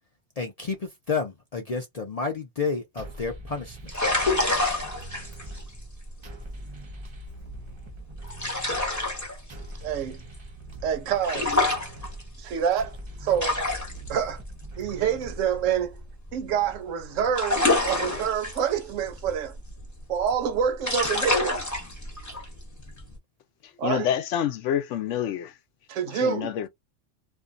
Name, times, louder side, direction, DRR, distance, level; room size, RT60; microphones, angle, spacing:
voice 1, 0.4-3.8, left 4 dB, 55° left, 0.4 m, -30 dB
sound 1, 3.0-16.0, right 1 dB, 40° right, 0.4 m, -43 dB
sound 2, 3.8-16.7 17.0-23.2, left 2 dB, 15° left, 0.8 m, -29 dB
voice 2, 9.8-10.2 10.8-11.6 12.4-13.6 14.1-14.4 14.8-16.0 16.3-19.6 20.1-21.7 23.8-24.1 25.9-26.5, right 8 dB, 90° right, 1.0 m, -27 dB
voice 3, 23.8-25.5 26.2-26.7, left 10 dB, 75° left, 0.9 m, -27 dB
2.5 x 2.3 x 2.4 m
omnidirectional pair, 1.3 m